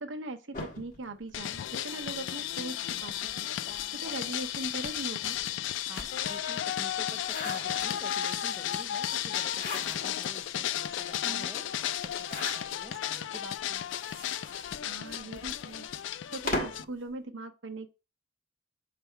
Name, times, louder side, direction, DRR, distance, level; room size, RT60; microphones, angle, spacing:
voice 1, 0.0-5.4 11.2-11.5 14.8-17.9, right 2 dB, 70° right, 0.9 m, -40 dB
sound 1, 0.5-2.1 3.0-6.4 6.9-8.3 9.3-10.3 10.8-10.9 11.1-11.2 12.1-13.0 13.7-16.9, left 2 dB, 40° left, 1.4 m, -40 dB
sound 2, 1.3-16.8, left 11 dB, 65° left, 0.3 m, -34 dB
voice 2, 5.9-13.8, right 1 dB, 15° right, 0.6 m, -48 dB
6.8 x 3.4 x 4.5 m
head